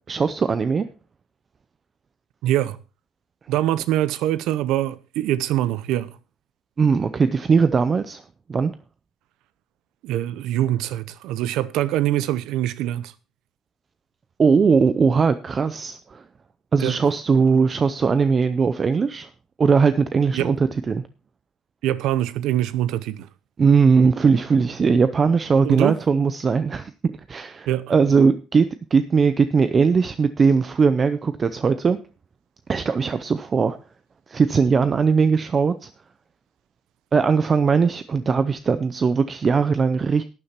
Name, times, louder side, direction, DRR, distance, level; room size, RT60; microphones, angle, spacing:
voice 1, 0.1-0.9 6.8-8.2 8.5-8.7 14.4-16.2 16.7-19.3 19.6-21.0 23.6-32.0 32.7-33.8 34.3-35.9 37.1-40.2, right 5 dB, 25° right, 0.5 m, -19 dB
voice 2, 2.4-2.8 3.5-6.2 10.0-13.1 16.8-17.0 20.3-20.5 21.8-23.3 25.6-25.9 27.7-27.9, right 13 dB, 85° right, 0.7 m, -23 dB
12.0 x 9.8 x 4.4 m
cardioid pair, 175°, 0 cm